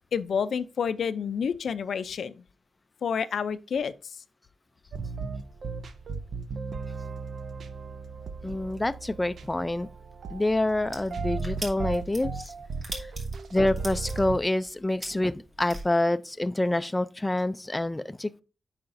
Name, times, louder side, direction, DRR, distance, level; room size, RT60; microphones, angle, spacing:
voice 1, 0.1-2.4 3.0-4.2, left 6 dB, 80° left, 0.4 m, -29 dB
sound 1, 4.9-14.4, right 4 dB, 70° right, 0.6 m, -36 dB
voice 2, 8.4-9.9 10.3-12.5 13.0-13.1 13.5-18.4, left 1 dB, 15° left, 0.3 m, -27 dB
sound 2, 10.8-15.8, right 1 dB, 40° right, 2.7 m, -39 dB
8.8 x 5.7 x 2.6 m
wide cardioid pair, 130°, 0 cm